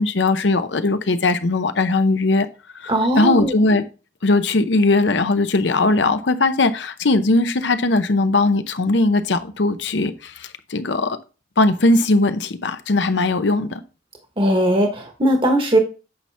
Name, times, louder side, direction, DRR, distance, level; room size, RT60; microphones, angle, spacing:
voice 1, 0.0-2.5 2.7-3.8 4.2-11.2 11.6-13.8, left 2 dB, 75° left, 0.8 m, -19 dB
voice 2, 2.9-3.5 14.4-15.8, right 1 dB, 30° right, 1.2 m, -18 dB
8.9 x 5.8 x 3.4 m
head